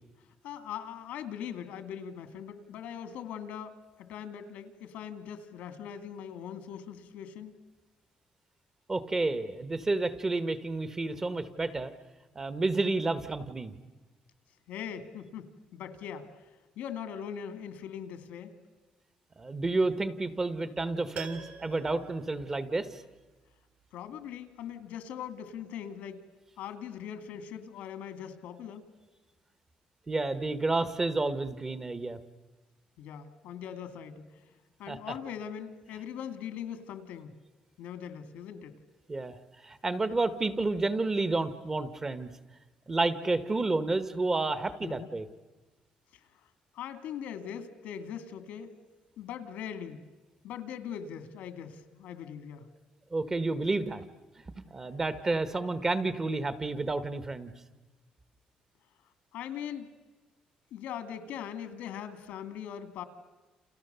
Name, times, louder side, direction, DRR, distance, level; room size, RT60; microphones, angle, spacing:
voice 1, 0.4-3.7 4.0-7.5 14.7-16.5 16.8-18.6 23.9-26.3 26.6-28.8 33.0-34.4 34.8-37.3 37.8-38.8 44.8-45.1 46.1-46.3 46.7-48.7 49.2-50.0 50.4-52.7 59.3-59.9 60.7-63.0, left 8 dB, 85° left, 10 dB, 2.2 m, -41 dB
voice 2, 8.9-11.9 12.3-13.7 19.4-23.0 30.1-32.2 34.9-35.0 39.1-39.4 39.6-42.3 42.9-45.2 53.1-54.1 54.6-57.5, right 3 dB, 20° right, 12 dB, 1.0 m, -30 dB
Piano, 21.1-23.2 23.5-23.6, right 7 dB, 60° right, 3.8 m, -46 dB
30.0 x 29.0 x 6.8 m, 1.3 s
cardioid pair, 175°, 3 cm